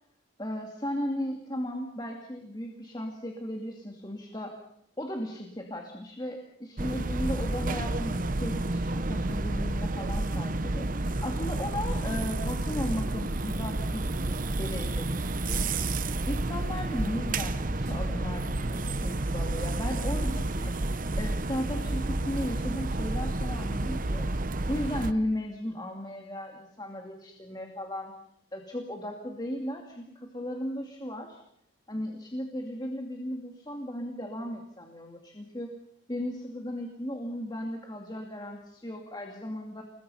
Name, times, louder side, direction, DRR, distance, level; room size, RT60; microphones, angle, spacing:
voice 1, 0.4-4.6 5.0-15.6 16.3-20.7 21.2-24.3 24.7-28.1 28.5-31.4 31.9-35.7 36.1-39.8, left 1 dB, 20° left, 2 dB, 2.6 m, -36 dB
sound 1, 6.8-25.1, right 2 dB, 45° right, 0.9 m, -30 dB
29.5 x 21.0 x 5.6 m, 0.74 s
head